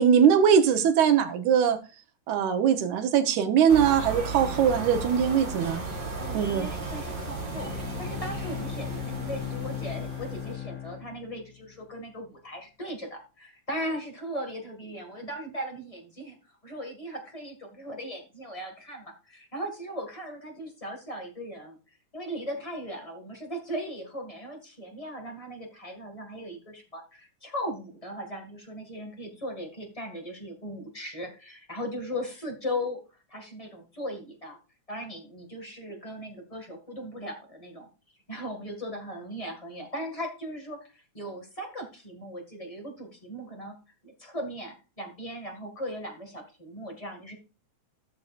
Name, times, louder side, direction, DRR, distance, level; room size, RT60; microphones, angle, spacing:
voice 1, 0.0-1.8 2.3-5.8 6.3-6.7, right 8 dB, 80° right, 2.4 m, -21 dB
sound 1, 3.7-10.5, right 3 dB, 40° right, 3.5 m, -35 dB
voice 2, 6.2-7.7 8.0-16.4 16.6-21.8 22.1-33.0 33.3-34.6 34.9-37.9 38.3-43.7 44.0-47.4, equal, 15° left, 1.3 m, -38 dB
Bowed string instrument, 7.4-11.8, left 12 dB, 70° left, 2.6 m, -37 dB
14.0 x 6.4 x 2.5 m
omnidirectional pair, 3.4 m